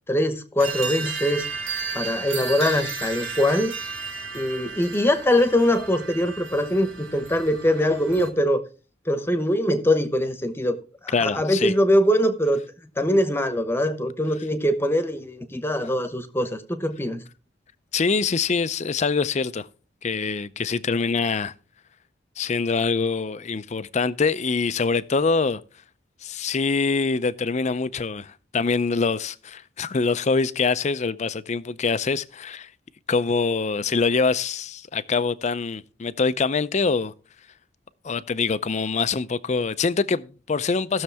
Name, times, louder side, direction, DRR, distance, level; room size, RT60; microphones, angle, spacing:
voice 1, 0.1-1.5 1.9-3.7 4.3-8.6 9.1-12.6 13.0-17.2, left 1 dB, 10° left, 1.0 m, -22 dB
sound 1, 0.6-8.3, right 4 dB, 90° right, 2.8 m, -33 dB
voice 2, 11.1-11.7 17.9-19.7 20.0-21.5 22.4-25.6 26.2-32.7 33.1-37.1 38.0-41.0, left 4 dB, 35° left, 0.5 m, -24 dB
17.0 x 6.5 x 3.4 m
head